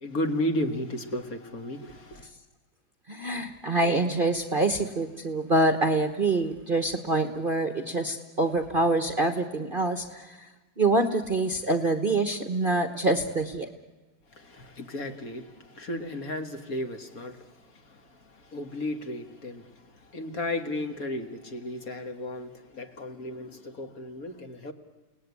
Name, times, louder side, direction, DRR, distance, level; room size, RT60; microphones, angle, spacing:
voice 1, 0.0-2.3 14.3-24.7, left 1 dB, 45° left, 2.1 m, -34 dB
voice 2, 3.1-10.5 10.8-13.7, right 2 dB, 30° right, 1.2 m, -26 dB
29.5 x 18.5 x 9.7 m
omnidirectional pair, 2.2 m